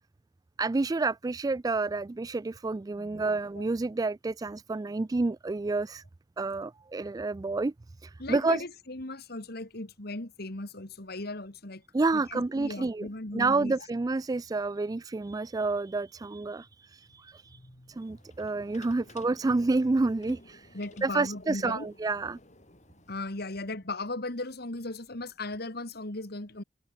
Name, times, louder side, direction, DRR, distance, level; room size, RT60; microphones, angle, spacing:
voice 1, 0.6-6.0 6.4-7.7 8.0-8.6 11.9-13.1 13.3-17.6 17.9-22.4, right 3 dB, 20° right, 0.3 m, -29 dB
voice 2, 8.2-11.8 12.1-13.7 17.5-17.9 20.3-20.4 20.7-21.9 23.1-26.6, left 2 dB, 60° left, 2.5 m, -37 dB
sound 1, 17.9-23.2, left 2 dB, 40° left, 5.7 m, -55 dB
head